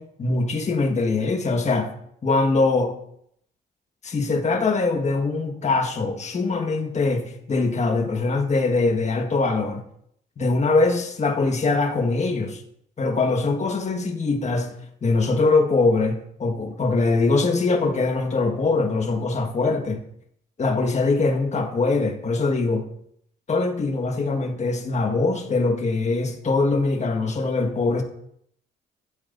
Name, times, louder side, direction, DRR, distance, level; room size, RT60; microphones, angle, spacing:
voice 1, 0.0-1.9 2.2-3.0 4.0-9.8 10.4-12.6 13.0-14.7 15.0-20.0 20.6-22.8 23.5-28.0, left 3 dB, 40° left, 1.5 m, -22 dB
11.5 x 8.2 x 2.6 m
cardioid pair, 75°, 18 cm